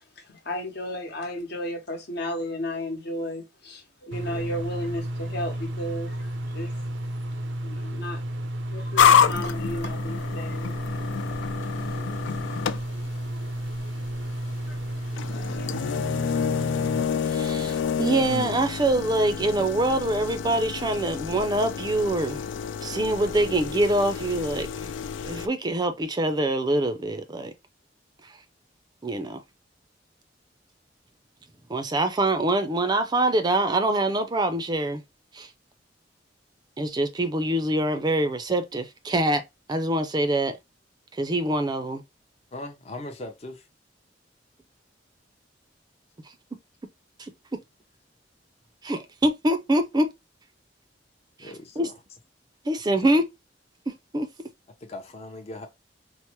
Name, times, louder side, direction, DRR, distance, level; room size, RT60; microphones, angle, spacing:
voice 1, 0.2-6.8 7.6-8.2 8.7-10.8 12.2-12.6 14.6-14.8 15.6-15.7, left 1 dB, 65° left, 1.0 m, -34 dB
sound 1, 4.1-17.0, right 1 dB, 80° right, 0.5 m, -32 dB
sound 2, 9.0-25.5, left 7 dB, 85° left, 0.3 m, -28 dB
voice 2, 17.3-22.4 22.8-24.9 25.2-27.5 29.0-29.4 31.7-35.0 35.3-35.5 36.8-39.4 39.7-40.6 41.2-42.0 47.2-47.6 48.8-50.1 51.8-51.9 52.7-53.3 53.9-54.3, right 1 dB, 25° right, 0.4 m, -25 dB
voice 3, 42.5-43.7 51.4-51.9 53.0-53.1 54.8-55.7, left 1 dB, 35° left, 0.6 m, -39 dB
4.5 x 2.0 x 2.9 m
head